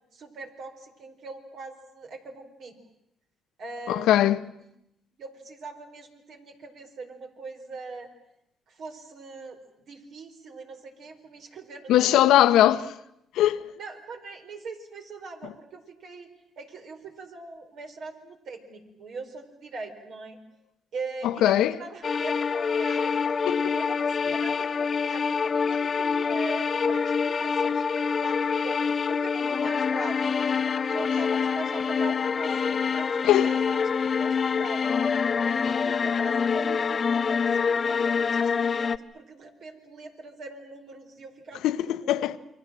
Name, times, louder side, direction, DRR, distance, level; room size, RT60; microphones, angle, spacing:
voice 1, 0.1-2.8 3.6-4.4 5.2-8.1 8.7-9.6 9.9-12.2 13.8-16.3 16.6-20.4 20.9-23.3 23.7-28.8 29.1-35.1 35.4-42.2, right 3 dB, 70° right, 4.7 m, -41 dB
voice 2, 3.9-4.4 11.9-12.9 13.3-13.6 21.2-21.8 23.4-23.7 33.2-33.5 41.6-42.4, left 12 dB, 85° left, 1.0 m, -21 dB
sound 1, 22.0-39.0, left 6 dB, 45° left, 0.9 m, -26 dB
29.0 x 23.5 x 7.7 m
cardioid pair, 90°, 0 cm